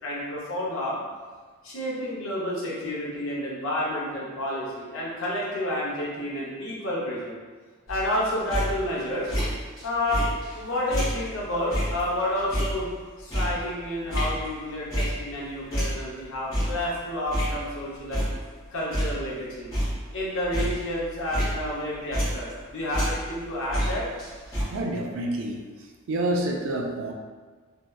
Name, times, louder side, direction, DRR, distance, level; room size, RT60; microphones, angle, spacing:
voice 1, 0.0-1.0 1.6-7.4 7.9-9.3 9.8-12.9 13.2-18.2 18.7-19.7 20.1-24.1, left 1 dB, 60° left, -5 dB, 0.6 m, -30 dB
sound 1, 7.9-9.8 10.1-15.4 15.7-17.8 18.1-18.6 18.9-22.6 22.9-24.6, equal, 15° left, 0.7 m, -29 dB
voice 2, 24.7-25.6 26.1-27.1, right 1 dB, 60° right, 1 dB, 0.3 m, -28 dB
2.7 x 2.1 x 2.2 m, 1.4 s
head